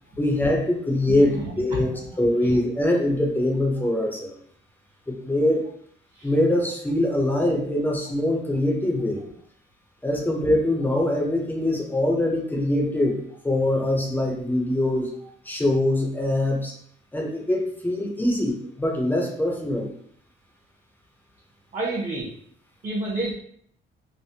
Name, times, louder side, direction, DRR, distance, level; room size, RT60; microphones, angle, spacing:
voice 1, 0.2-4.4 5.1-5.7 6.2-9.2 10.0-15.1 15.4-16.7 17.1-19.9, left 1 dB, 10° left, 0 dB, 0.5 m, -23 dB
voice 2, 1.3-1.8 6.1-6.3 21.7-22.3 22.8-23.3, right 2 dB, 40° right, -7 dB, 0.9 m, -29 dB
3.2 x 2.1 x 2.7 m, 0.64 s
cardioid pair, 140°, 21 cm